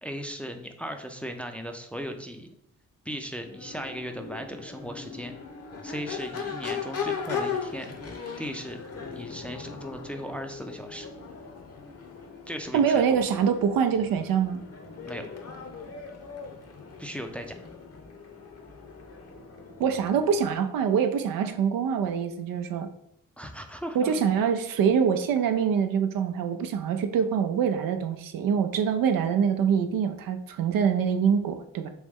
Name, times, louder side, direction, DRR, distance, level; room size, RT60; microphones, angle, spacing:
voice 1, 0.0-2.5 3.1-5.3 5.8-7.9 8.4-8.8 9.1-11.1 12.5-13.2 15.1-15.2 17.0-17.5 23.4-24.2, equal, 5° left, 5 dB, 0.5 m, -37 dB
Crowd / Race car auto racing / Accelerating revving vroom, 3.4-20.5, left 6 dB, 45° left, 0.8 m, -38 dB
voice 2, 12.7-14.6 19.8-22.9 23.9-31.9, right 7 dB, 75° right, 7 dB, 0.5 m, -25 dB
3.1 x 3.1 x 3.5 m, 0.75 s
supercardioid pair, 50°, 34 cm